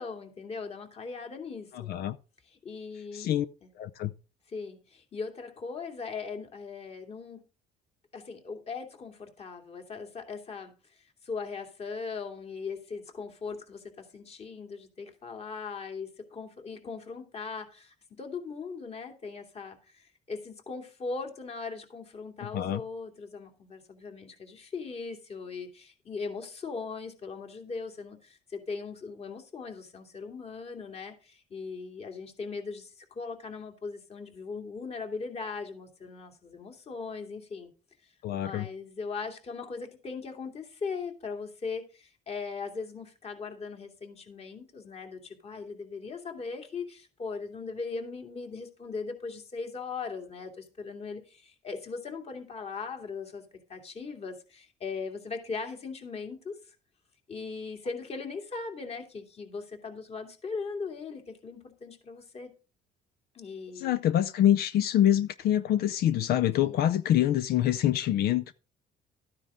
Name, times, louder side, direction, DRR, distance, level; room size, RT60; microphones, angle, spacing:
voice 1, 0.0-1.9 2.6-3.3 4.5-7.4 8.1-10.7 11.2-37.7 38.3-53.4 53.7-56.8 57.3-62.5 63.3-64.0 66.6-66.8, left 4 dB, 40° left, 2.6 m, -39 dB
voice 2, 1.7-2.2 3.1-3.5 3.8-4.1 22.4-22.8 38.2-38.7 63.8-68.5, left 11 dB, 65° left, 0.6 m, -25 dB
13.0 x 9.7 x 3.7 m
cardioid pair, 110°, 17 cm